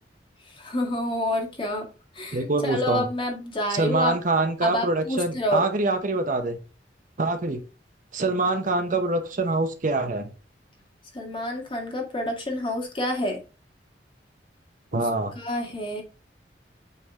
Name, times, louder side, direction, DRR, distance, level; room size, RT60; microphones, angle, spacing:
voice 1, 0.4-1.8 2.1-4.2 4.6-5.6 11.1-13.4 14.9-15.1 15.3-16.0, left 1 dB, 30° left, 1 dB, 1.8 m, -28 dB
voice 2, 2.3-3.1 3.7-6.6 7.2-7.6 8.1-10.3 14.9-15.3, right 2 dB, 50° right, 7 dB, 0.8 m, -25 dB
8.2 x 3.5 x 3.6 m, 0.32 s
head